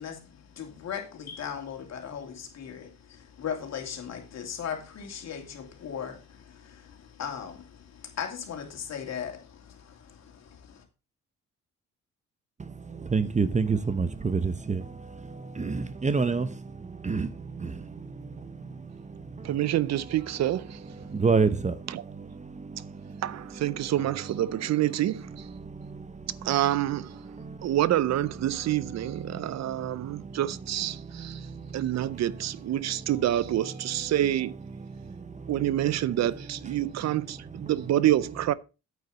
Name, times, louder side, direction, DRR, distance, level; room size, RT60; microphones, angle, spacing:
voice 1, 0.0-10.8, left 8 dB, 60° left, 2.8 m, -38 dB
voice 2, 12.6-27.8 28.4-37.9, right 4 dB, 25° right, 0.8 m, -33 dB
voice 3, 19.4-20.8 21.9-22.0 23.2-25.5 26.4-27.2 27.6-31.5 31.7-34.5 35.5-38.5, right 13 dB, 60° right, 0.6 m, -27 dB
9.1 x 8.3 x 4.0 m
cardioid pair, 90°, 30 cm